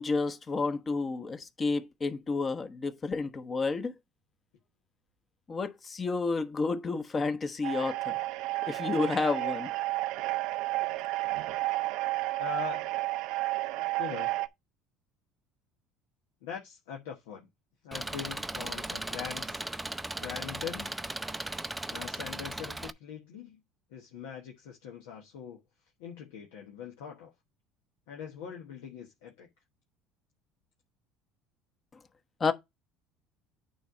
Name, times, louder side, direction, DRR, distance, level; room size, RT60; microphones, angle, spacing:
voice 1, 0.0-3.9 5.5-8.1 8.7-9.7 32.4-32.5, left 4 dB, 30° left, 1.0 m, -30 dB
sound 1, 7.6-14.5, right 19 dB, 70° right, 0.5 m, -32 dB
voice 2, 12.4-12.9 14.0-14.4 16.4-17.5 17.8-19.6 20.1-21.0 21.9-23.6 23.9-25.6 26.0-27.3 28.1-29.5, left 8 dB, 85° left, 1.2 m, -42 dB
Engine, 17.9-22.9, right 1 dB, 10° right, 0.5 m, -37 dB
9.0 x 3.2 x 5.0 m
supercardioid pair, 90°, 0 cm